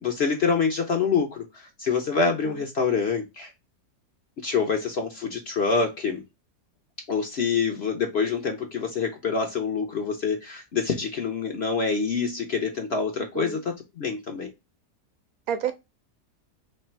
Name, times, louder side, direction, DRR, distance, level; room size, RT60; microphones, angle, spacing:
voice 1, 0.0-3.5 4.4-6.2 7.1-14.5, left 5 dB, 50° left, 0.9 m, -26 dB
voice 2, 2.2-2.6 13.4-13.6 15.5-15.7, right 8 dB, 70° right, 1.0 m, -30 dB
3.3 x 3.2 x 4.3 m
omnidirectional pair, 1.7 m